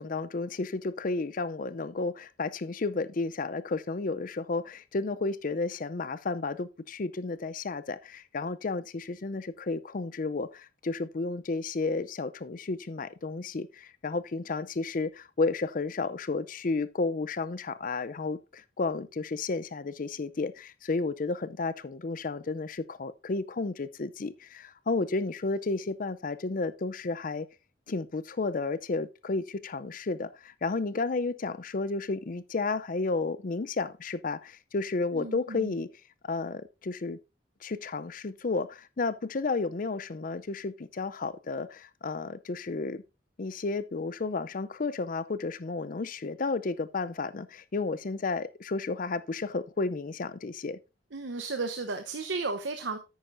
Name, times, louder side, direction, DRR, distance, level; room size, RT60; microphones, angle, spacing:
voice 1, 0.0-27.5 27.9-35.9 36.2-37.2 37.6-43.0 43.4-50.8, left 3 dB, 45° left, 0.5 m, -32 dB
voice 2, 35.1-35.7 51.1-53.0, right 3 dB, 75° right, 0.9 m, -34 dB
10.5 x 8.8 x 2.6 m
head